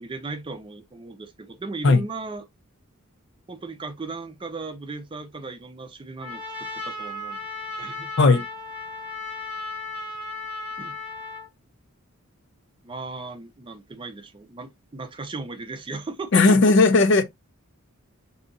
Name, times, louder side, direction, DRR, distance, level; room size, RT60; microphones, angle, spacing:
voice 1, 0.0-2.4 3.5-7.5 7.8-8.1 10.8-11.0 12.8-16.6, right 3 dB, 25° right, 0.4 m, -36 dB
Trumpet, 6.2-11.5, left 2 dB, 5° right, 1.9 m, -35 dB
voice 2, 16.3-17.2, left 3 dB, 55° left, 0.4 m, -16 dB
3.9 x 2.7 x 2.5 m
head